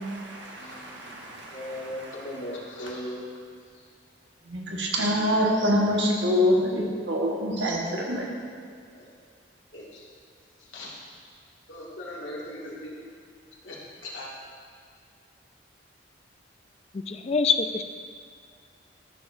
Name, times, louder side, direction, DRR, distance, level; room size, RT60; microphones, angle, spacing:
voice 1, 0.5-3.2 9.0-9.1 9.7-10.0 10.7-10.9 11.7-12.9 13.6-13.8 14.0-14.3, left 1 dB, 80° left, -5 dB, 2.1 m, -38 dB
voice 2, 4.5-8.3, equal, 65° right, -2 dB, 1.4 m, -24 dB
voice 3, 16.9-17.8, left 5 dB, 35° left, 8 dB, 0.4 m, -25 dB
13.0 x 6.8 x 2.6 m, 2.2 s
head